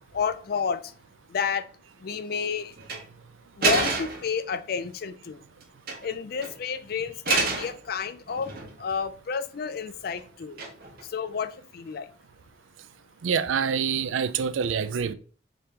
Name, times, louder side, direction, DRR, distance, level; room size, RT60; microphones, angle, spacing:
voice 1, 0.1-0.8 1.3-1.7 2.0-2.7 3.6-5.4 6.0-8.5 8.8-10.6 11.1-12.1, left 6 dB, 55° left, 0.4 m, -30 dB
sound 1, 2.8-3.0 3.6-4.3 5.6-6.1 6.4-6.6 7.3-7.8 8.3-8.9 10.6-11.0, right 3 dB, 50° right, 1.2 m, -27 dB
voice 2, 13.2-15.1, right 7 dB, 90° right, 0.4 m, -26 dB
5.3 x 2.9 x 3.2 m
head